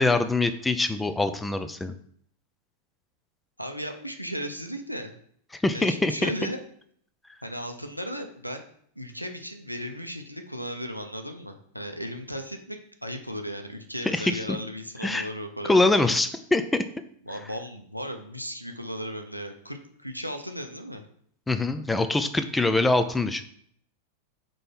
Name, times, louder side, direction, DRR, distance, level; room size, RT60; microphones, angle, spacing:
voice 1, 0.0-1.9 5.6-6.3 14.1-14.3 15.0-15.3 15.6-16.8 21.5-23.4, left 2 dB, 10° left, 10 dB, 0.5 m, -23 dB
voice 2, 3.6-5.1 5.7-6.6 7.4-8.6 9.0-15.9 17.2-21.1 22.4-22.5, equal, 90° right, 5 dB, 0.8 m, -36 dB
5.2 x 4.4 x 5.7 m, 0.64 s
figure-of-eight pair, 90°, 0 cm